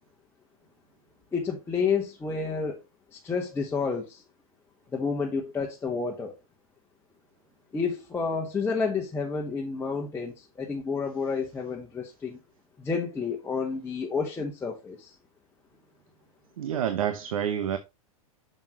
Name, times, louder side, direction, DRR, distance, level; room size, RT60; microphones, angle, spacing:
voice 1, 1.3-2.8 3.1-4.2 4.9-6.3 7.7-12.4 12.8-15.1, left 5 dB, 15° left, 1.2 m, -30 dB
voice 2, 16.6-17.8, right 9 dB, 70° right, 0.9 m, -28 dB
7.1 x 6.6 x 3.0 m
hypercardioid pair, 105°, 18 cm